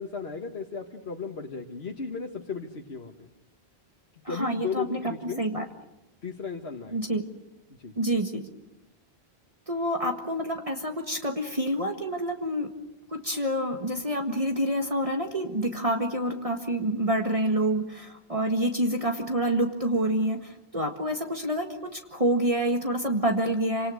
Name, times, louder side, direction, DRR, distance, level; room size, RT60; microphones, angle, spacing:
voice 1, 0.0-3.3 4.3-5.4 6.2-7.0 7.7-8.0, left 5 dB, 75° left, 1 dB, 1.9 m, -35 dB
voice 2, 4.2-5.1 5.4-5.7 6.9-7.2 8.0-8.5 9.7-12.7 13.1-23.9, right 1 dB, 35° right, 3 dB, 1.8 m, -27 dB
27.5 x 26.5 x 6.5 m, 0.89 s
omnidirectional pair, 1.1 m